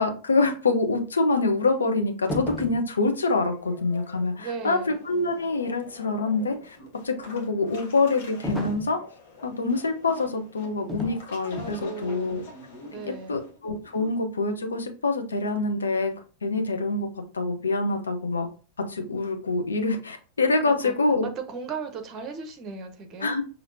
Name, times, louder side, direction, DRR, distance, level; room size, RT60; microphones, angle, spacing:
voice 1, 0.0-6.8 7.0-9.0 9.4-12.4 12.9-13.0 13.3-16.1 16.4-17.1 17.3-18.5 18.9-21.3 23.2-23.4, left 3 dB, 75° left, 6 dB, 0.6 m, -25 dB
sound 1, 2.3-2.9 8.4-9.0 10.9-11.2 11.6-11.8, left 1 dB, 5° left, 0.8 m, -33 dB
sound 2, 3.4-14.2, left 3 dB, 55° left, 1.1 m, -46 dB
voice 2, 4.4-5.0 11.5-12.4 12.8-13.3 20.6-20.9 21.2-23.4, right 5 dB, 30° right, 6 dB, 0.9 m, -37 dB
5.6 x 2.8 x 2.6 m, 0.37 s
figure-of-eight pair, 90°, 0 cm